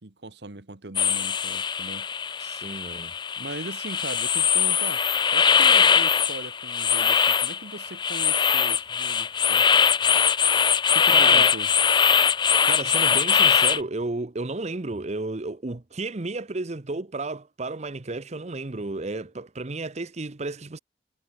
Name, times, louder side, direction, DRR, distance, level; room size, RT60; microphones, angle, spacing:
voice 1, 0.0-2.4 3.4-5.0 5.3-9.7 10.9-11.7, right 2 dB, 65° right, 1.4 m, -39 dB
sound 1, 1.0-13.8, left 7 dB, 25° left, 0.5 m, -21 dB
voice 2, 2.4-3.1 11.1-11.5 12.7-20.8, right 2 dB, 40° right, 0.9 m, -32 dB
head